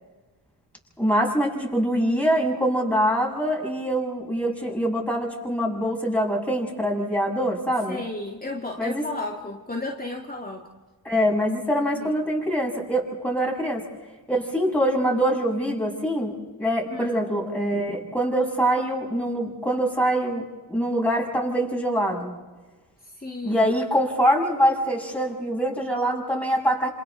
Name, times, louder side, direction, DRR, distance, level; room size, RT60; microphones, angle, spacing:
voice 1, 1.0-8.0 8.8-9.1 11.0-13.8 14.3-20.4 20.7-22.3 23.4-26.9, equal, 5° left, -1 dB, 7.5 m, -24 dB
voice 2, 7.9-10.6 11.9-12.1 16.9-17.3 23.2-23.6, left 2 dB, 20° left, 0 dB, 2.6 m, -33 dB
28.0 x 27.5 x 4.2 m, 1.2 s
cardioid pair, 65°, 48 cm